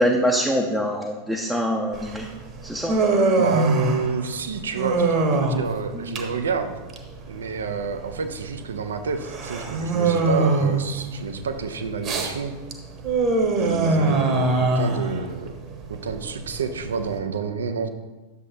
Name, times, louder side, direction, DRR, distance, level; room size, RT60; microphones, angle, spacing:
voice 1, 0.0-2.3 2.6-3.0, equal, 5° right, -1 dB, 0.7 m, -23 dB
Human voice, 1.9-17.2, right 3 dB, 35° right, 1.2 m, -24 dB
voice 2, 3.3-6.8 7.3-12.5 13.6-15.5 15.9-17.9, right 5 dB, 65° right, 8 dB, 0.7 m, -29 dB
10.5 x 7.2 x 2.8 m, 1.2 s
figure-of-eight pair, 90°, 0 cm